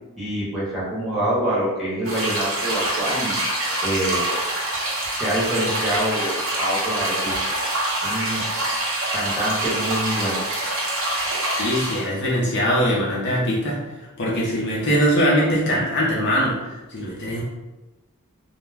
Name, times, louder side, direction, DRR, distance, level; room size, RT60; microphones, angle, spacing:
voice 1, 0.2-3.4 3.8-4.2 5.2-7.3 8.0-8.4 9.1-10.4, right 1 dB, ahead, -9 dB, 0.9 m, -25 dB
sound 1, 2.0-12.1, right 1 dB, 60° right, 0.7 m, -25 dB
voice 2, 11.6-13.8 14.2-17.4, equal, 50° left, -5 dB, 0.5 m, -22 dB
2.3 x 2.1 x 3.3 m, 1.1 s
head